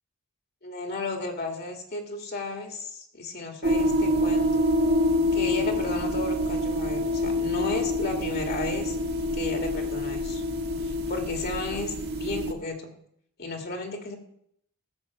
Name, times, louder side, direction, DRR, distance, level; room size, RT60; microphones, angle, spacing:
voice 1, 0.6-4.6 5.3-9.0 9.3-10.4 10.8-11.9 12.2-12.9 13.4-14.2, left 2 dB, 45° left, 3 dB, 2.0 m, -33 dB
sound 1, 3.6-12.5, left 1 dB, 50° right, 1.3 m, -26 dB
15.0 x 6.4 x 7.1 m, 0.69 s
head